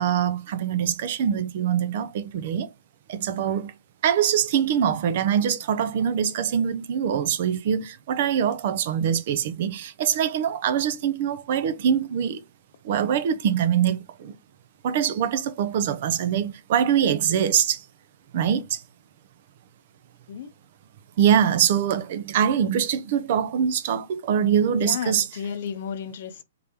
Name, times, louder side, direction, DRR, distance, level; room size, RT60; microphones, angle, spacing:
voice 1, 0.0-2.7 3.1-3.7 4.0-12.4 12.8-14.3 14.8-17.8 18.3-18.8 21.2-25.3, right 8 dB, 55° right, 0.6 m, -23 dB
voice 2, 24.7-26.4, left 7 dB, 55° left, 0.6 m, -33 dB
3.8 x 3.4 x 2.8 m
hypercardioid pair, 120°, 0 cm